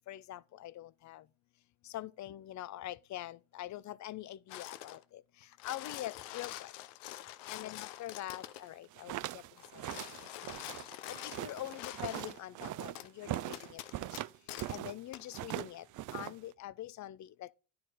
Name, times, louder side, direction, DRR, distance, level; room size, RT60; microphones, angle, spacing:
voice 1, 0.1-1.2 1.9-5.2 5.6-6.7 7.5-9.4 9.9-10.0 11.1-13.8 14.7-15.8 16.1-17.5, left 14 dB, 45° left, 0.5 m, -44 dB
sound 1, 4.5-5.0 5.4-8.7 9.6-12.4 13.0-13.1 13.5-14.8 15.1-15.3, left 14 dB, 85° left, 0.7 m, -46 dB
sound 2, 8.7-15.0 15.3-16.5, right 15 dB, 45° right, 0.4 m, -41 dB
10.0 x 4.7 x 4.8 m
supercardioid pair, 95°, 43 cm